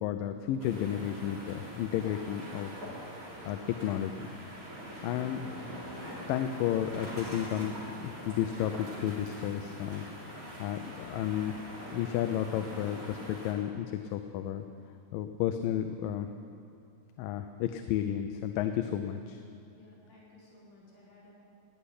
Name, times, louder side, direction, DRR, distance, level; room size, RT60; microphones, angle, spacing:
voice 1, 0.0-2.7 3.5-4.2 5.0-5.9 6.3-7.8 8.0-10.1 10.3-11.7 11.9-14.7 15.1-16.3 17.2-19.4, left 10 dB, 85° left, 7 dB, 2.3 m, -32 dB
sound 1, 0.6-13.5, equal, 25° right, 4.0 m, -43 dB
voice 2, 19.7-21.3, left 2 dB, 65° left, -8 dB, 6.0 m, -57 dB
19.0 x 7.0 x 9.8 m, 2.5 s
omnidirectional pair, 3.9 m